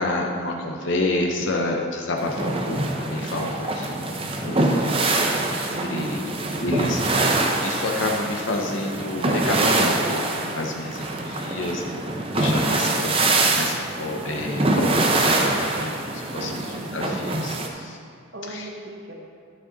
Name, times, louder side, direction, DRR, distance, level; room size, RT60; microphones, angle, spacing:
voice 1, 0.0-5.0 5.3-6.2 6.6-12.0 12.3-18.0 18.5-18.7, left 2 dB, 60° left, 1 dB, 0.8 m, -29 dB
sound 1, 2.2-17.7, right 2 dB, 25° right, 0.7 m, -24 dB
voice 2, 5.7-6.7 16.3-16.9 18.3-19.1, right 1 dB, 55° right, -1 dB, 1.2 m, -37 dB
11.5 x 6.5 x 3.9 m, 2.3 s
head